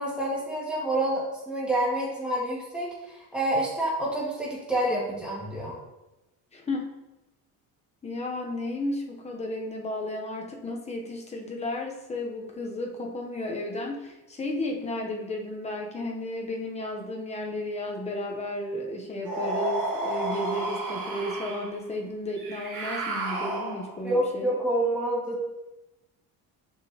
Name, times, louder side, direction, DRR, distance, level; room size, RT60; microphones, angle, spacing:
voice 1, 0.0-5.7 24.0-25.4, right 1 dB, 5° right, -6 dB, 1.6 m, -28 dB
voice 2, 6.5-6.9 8.0-24.5, left 1 dB, 15° left, 1 dB, 0.7 m, -33 dB
sound 1, 19.3-21.7 22.4-24.0, right 1 dB, 55° right, 2.0 m, -31 dB
7.0 x 5.1 x 2.8 m, 0.98 s
cardioid pair, 170°, 38 cm